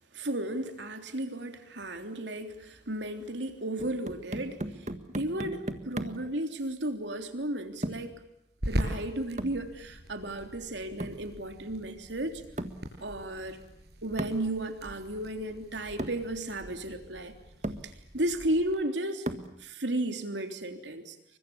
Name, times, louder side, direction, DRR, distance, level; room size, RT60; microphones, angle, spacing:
voice 1, 0.1-4.6 5.2-8.1 8.7-12.4 13.0-13.6 14.0-17.3 17.8-19.3 19.6-21.2, right 1 dB, 90° right, 6 dB, 3.5 m, -34 dB
sound 1, 3.8-6.3 7.8-8.2 9.4-9.7 11.0-11.3 12.6-12.9 14.2-14.5 15.4-15.5 16.0-16.3 17.1-17.2 17.6-17.9 19.3-19.6, right 1 dB, 40° right, 1.7 m, -36 dB
sound 2, 6.6-18.7, equal, 65° right, 6.4 m, -41 dB
29.5 x 24.5 x 7.1 m, 0.80 s
head